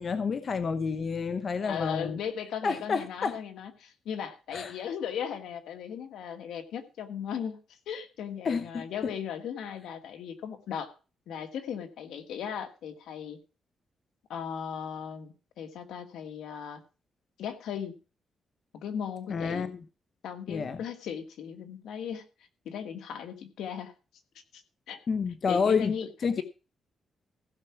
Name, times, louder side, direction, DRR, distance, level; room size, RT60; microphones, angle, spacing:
voice 1, 0.0-2.2 2.6-3.4 4.5-4.8 8.4-9.1 19.3-19.8 20.5-20.8 25.1-25.9 26.2-26.4, left 5 dB, 50° left, 0.9 m, -29 dB
voice 2, 1.6-7.6 7.9-10.9 11.3-13.4 14.3-16.8 17.4-17.9 18.7-19.7 20.2-22.2 22.7-23.9 24.5-24.6 24.9-25.0 25.5-26.1, left 8 dB, 90° left, 1.7 m, -37 dB
15.5 x 6.0 x 5.9 m
cardioid pair, 90°, 0 cm